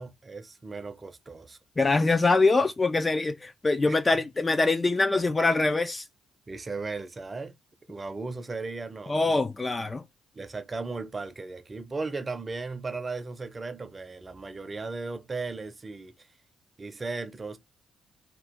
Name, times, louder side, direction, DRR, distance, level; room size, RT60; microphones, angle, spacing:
voice 1, 0.0-1.6 3.9-4.3 6.5-7.6 7.9-9.4 10.3-16.3 16.8-17.6, right 3 dB, 30° right, 0.6 m, -36 dB
voice 2, 1.8-6.0 9.1-10.0, left 3 dB, 25° left, 0.3 m, -24 dB
2.9 x 2.4 x 3.4 m
cardioid pair, 90°, 0 cm